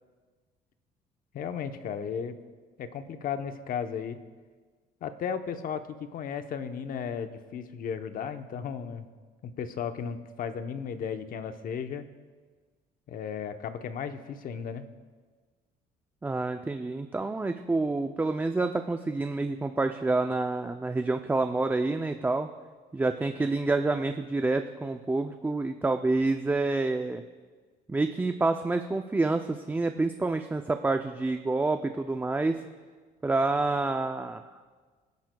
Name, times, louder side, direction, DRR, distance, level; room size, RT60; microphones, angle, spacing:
voice 1, 1.3-2.3 2.8-4.2 5.0-9.1 9.4-12.1 13.1-14.8, left 7 dB, 55° left, 8 dB, 0.9 m, -35 dB
voice 2, 16.2-22.5 22.9-27.2 27.9-32.6 33.2-34.4, right 3 dB, 10° right, 7 dB, 0.4 m, -28 dB
25.0 x 10.5 x 2.3 m, 1.5 s
cardioid pair, 110°, 17 cm